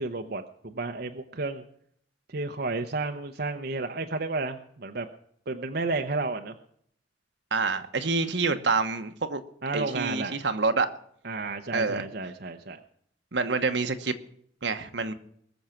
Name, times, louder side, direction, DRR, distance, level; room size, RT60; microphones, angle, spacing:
voice 1, 0.0-1.6 2.3-5.1 5.5-6.6 9.6-10.4 11.2-12.8, right 3 dB, 60° right, 0.9 m, -32 dB
voice 2, 7.5-9.4 9.7-10.9 11.7-12.0 13.3-14.1 14.6-15.1, right 4 dB, 75° right, 1.3 m, -27 dB
21.0 x 7.2 x 5.9 m
head